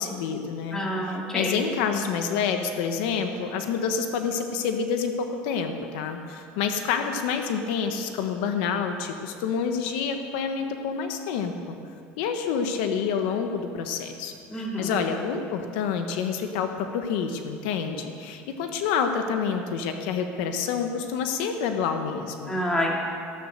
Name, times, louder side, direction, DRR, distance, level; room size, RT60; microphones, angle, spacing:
voice 1, 0.0-11.8 12.2-22.5, left 6 dB, 80° left, 6 dB, 1.2 m, -28 dB
voice 2, 0.7-1.6 14.5-15.0 22.5-23.0, equal, 10° left, -2 dB, 2.6 m, -28 dB
14.0 x 13.0 x 6.6 m, 2.4 s
cardioid pair, 145°, 5 cm